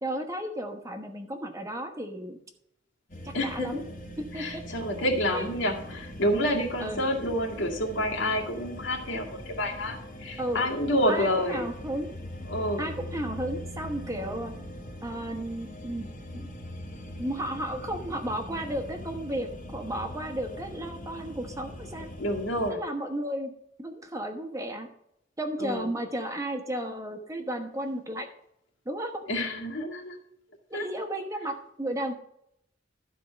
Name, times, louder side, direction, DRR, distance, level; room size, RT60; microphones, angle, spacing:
voice 1, 0.0-2.4 3.4-3.8 4.3-4.6 5.3-5.4 6.8-7.0 10.4-10.6 11.1-12.1 12.8-14.5 15.0-16.1 16.3-16.5 17.1-22.1 22.7-23.5 23.8-24.9 25.4-28.3 28.8-29.2 30.7-32.1, right 1 dB, 20° right, 5 dB, 1.2 m, -33 dB
sound 1, 3.1-22.7, equal, 45° left, 1.7 m, -42 dB
voice 2, 3.3-3.8 4.3-11.7 12.5-12.9 22.2-22.8 25.6-25.9 29.3-30.2 30.7-30.8, equal, 85° left, -1 dB, 2.2 m, -28 dB
12.5 x 4.6 x 6.4 m, 0.75 s
head